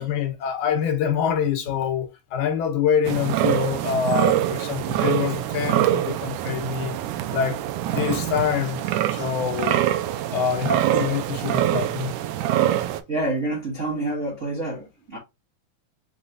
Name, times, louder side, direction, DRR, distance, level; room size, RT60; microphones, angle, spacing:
voice 1, 0.0-7.0 7.3-7.7 7.9-8.8 9.1-9.8 10.3-12.1, left 8 dB, 75° left, 2.4 m, -25 dB
sound 1, 3.0-13.0, right 12 dB, 80° right, 2.0 m, -24 dB
voice 2, 13.1-15.2, right 2 dB, 45° right, 1.0 m, -27 dB
5.6 x 3.0 x 2.6 m
omnidirectional pair, 3.5 m